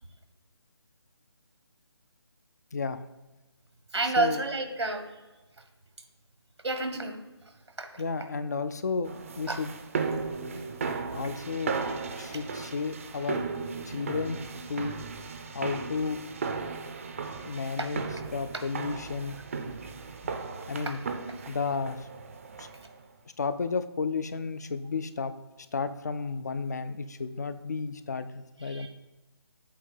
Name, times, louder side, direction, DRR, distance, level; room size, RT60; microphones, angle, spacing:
voice 1, 3.9-5.0 6.6-7.2 7.8-8.0 9.5-9.6 17.8-17.9 20.8-20.9 28.6-28.9, right 3 dB, 85° right, 6 dB, 1.2 m, -29 dB
voice 2, 8.0-9.7 11.1-11.8 12.2-13.4 13.8-14.4 14.7-15.0 15.5-16.3 17.5-18.1 18.3-19.4 20.5-21.0 21.5-22.1 22.6-22.7 23.4-25.3 25.7-28.9, left 4 dB, 40° left, 12 dB, 0.4 m, -32 dB
sound 1, 9.1-22.9, right 4 dB, 30° right, 0.5 m, -36 dB
8.3 x 2.8 x 5.4 m, 1.1 s
figure-of-eight pair, 160°, 14 cm